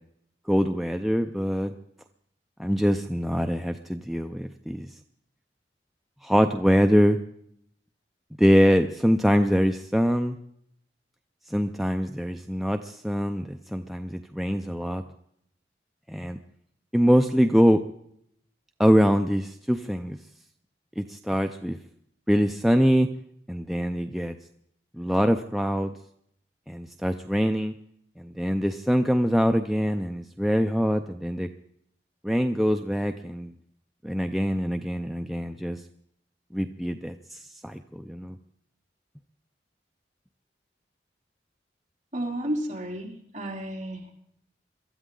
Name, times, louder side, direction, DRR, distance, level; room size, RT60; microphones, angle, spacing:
voice 1, 0.5-1.7 2.6-4.9 6.2-7.2 8.4-10.4 11.5-15.0 16.1-16.4 16.9-17.8 18.8-20.2 21.0-21.8 22.3-23.1 23.5-24.3 25.0-25.9 26.7-27.7 28.2-31.5 32.2-33.5 34.0-35.8 36.5-38.4, equal, ahead, 5 dB, 0.5 m, -24 dB
voice 2, 42.1-44.1, right 1 dB, 40° right, -2 dB, 3.5 m, -32 dB
23.0 x 13.5 x 3.8 m, 0.69 s
head